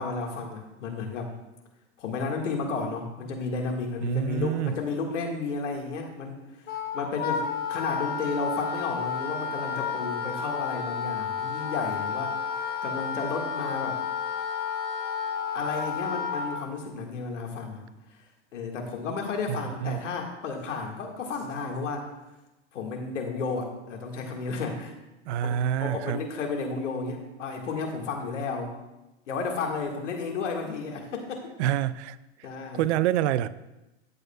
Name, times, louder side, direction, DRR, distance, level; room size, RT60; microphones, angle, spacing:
voice 1, 0.0-1.3 2.0-6.4 6.9-7.4 7.7-12.4 12.8-14.0 15.5-17.8 18.5-22.1 22.7-24.9 25.4-28.7 29.3-31.5 32.4-32.9, left 4 dB, 80° left, 2 dB, 1.8 m, -32 dB
voice 2, 4.0-4.8 19.5-20.0 25.3-26.2 31.6-32.2 32.7-33.5, right 11 dB, 70° right, 16 dB, 0.5 m, -27 dB
Wind instrument woodwind instrument, 6.7-16.6, left 6 dB, 25° left, 1.1 m, -31 dB
13.0 x 8.1 x 2.3 m, 0.99 s
hypercardioid pair, 110°, 36 cm